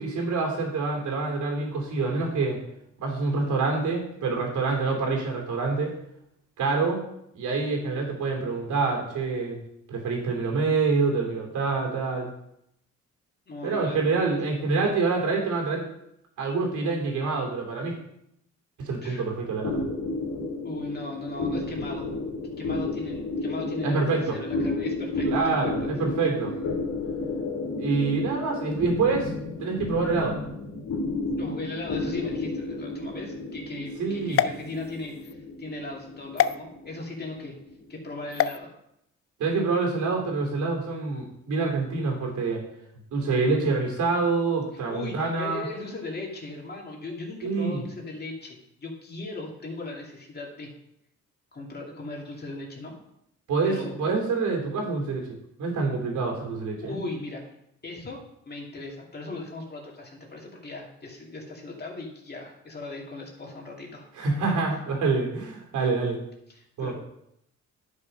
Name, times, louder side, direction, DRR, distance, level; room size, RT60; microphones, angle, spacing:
voice 1, 0.0-2.6 3.0-5.9 6.6-7.0 7.3-9.6 9.9-12.3 13.6-15.9 16.4-17.9 18.8-19.9 23.8-24.4 25.2-26.5 27.8-29.3 29.6-30.4 34.0-34.4 39.4-42.6 43.1-45.6 47.4-47.8 53.5-55.3 55.6-57.0 64.2-66.2 66.8-66.9, right 4 dB, 75° right, 1 dB, 3.2 m, -26 dB
voice 2, 13.5-14.0 19.0-19.3 20.6-22.1 22.6-25.9 31.3-37.5 37.9-38.7 44.9-50.7 51.5-53.0 53.6-53.9 56.8-57.4 57.8-64.1 65.8-65.9 66.5-66.9, left 2 dB, 35° left, -1 dB, 2.5 m, -38 dB
sound 1, 19.6-38.4, left 2 dB, 85° left, 2.0 m, -32 dB
sound 2, 34.3-35.3 36.4-36.5 38.3-38.6, left 10 dB, 50° left, 0.5 m, -26 dB
11.0 x 5.5 x 5.2 m, 0.77 s
cardioid pair, 90°, 30 cm